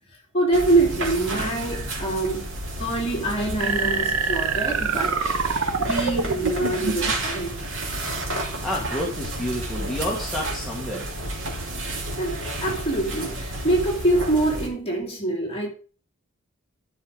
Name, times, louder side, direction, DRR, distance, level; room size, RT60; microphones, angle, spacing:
voice 1, 0.3-2.5 2.8-5.2 5.8-7.6 12.2-15.7, right 2 dB, 25° left, 3.1 m, -25 dB
sound 1, 0.5-14.7, right 1 dB, 60° right, 2.7 m, -31 dB
sound 2, 3.6-7.1, right 4 dB, 80° right, 0.9 m, -25 dB
voice 2, 8.6-11.1, left 1 dB, ahead, 1.6 m, -29 dB
11.0 x 5.6 x 5.0 m
head